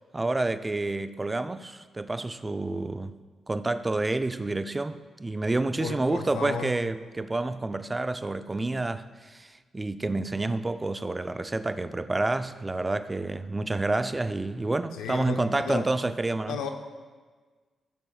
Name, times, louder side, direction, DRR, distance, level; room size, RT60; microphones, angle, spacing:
voice 1, 0.1-3.1 3.5-16.6, right 2 dB, 25° right, 11 dB, 0.5 m, -29 dB
voice 2, 5.8-6.8 14.9-15.9 16.5-16.7, left 6 dB, 85° left, 5 dB, 0.7 m, -34 dB
14.5 x 6.9 x 2.4 m, 1.4 s
supercardioid pair, 45°, 0 cm